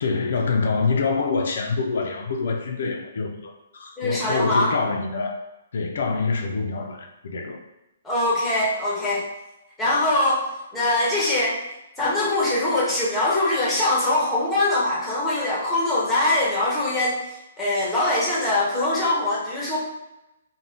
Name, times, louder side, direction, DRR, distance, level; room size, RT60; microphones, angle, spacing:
voice 1, 0.0-5.4 5.7-7.6, left 4 dB, 65° left, 2 dB, 0.4 m, -25 dB
voice 2, 4.0-4.7 8.0-9.2 9.8-10.4 10.7-11.6 12.0-19.8, left 2 dB, 5° left, -6 dB, 0.7 m, -22 dB
2.5 x 2.1 x 3.4 m, 0.94 s
hypercardioid pair, 165°, 0 cm